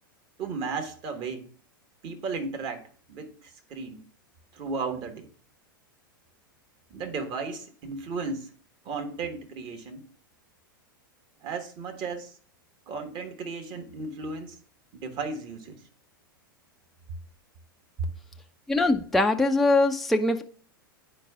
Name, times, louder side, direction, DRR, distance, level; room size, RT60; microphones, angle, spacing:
voice 1, 0.4-1.5 2.0-4.0 4.5-5.3 6.9-8.5 8.8-10.1 11.4-12.3 12.9-14.6 14.9-15.8, right 4 dB, 40° right, 1.3 m, -35 dB
voice 2, 18.7-20.4, left 2 dB, ahead, 0.4 m, -22 dB
10.5 x 4.5 x 2.3 m
hypercardioid pair, 100°, 12 cm